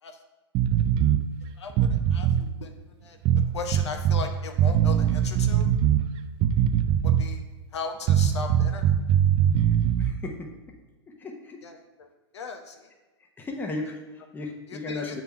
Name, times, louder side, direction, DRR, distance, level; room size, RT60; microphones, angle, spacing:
sound 1, 0.5-1.2 1.7-2.5 3.3-4.3 4.6-6.0 6.4-7.4 8.1-10.1, right 9 dB, 35° right, 0.4 m, -22 dB
voice 1, 1.6-2.7 3.0-3.2 3.5-5.7 7.0-7.4 7.7-8.9 11.6-12.9 13.8-13.9 14.7-15.2, left 5 dB, 75° left, 5 dB, 0.8 m, -37 dB
voice 2, 10.0-10.7 11.1-11.7 13.2-15.2, left 2 dB, 15° left, 1 dB, 1.0 m, -36 dB
6.8 x 3.9 x 4.4 m, 1.2 s
hypercardioid pair, 110°, 15 cm